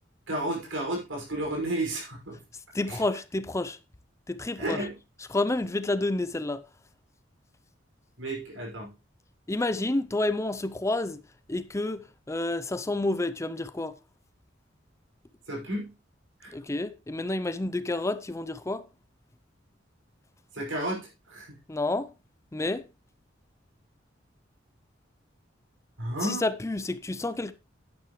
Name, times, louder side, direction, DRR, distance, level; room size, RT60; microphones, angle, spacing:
voice 1, 0.3-2.4 2.9-3.0 4.6-4.9 8.2-8.9 15.5-15.9 16.4-16.5 20.5-21.5 26.0-26.4, right 1 dB, 90° right, 5.8 m, -32 dB
voice 2, 2.7-3.8 4.3-4.8 5.3-6.6 9.5-11.2 11.5-14.0 16.5-18.8 21.7-22.1 22.5-22.9 26.2-27.5, left 2 dB, 15° left, 0.5 m, -29 dB
10.5 x 9.7 x 3.1 m
head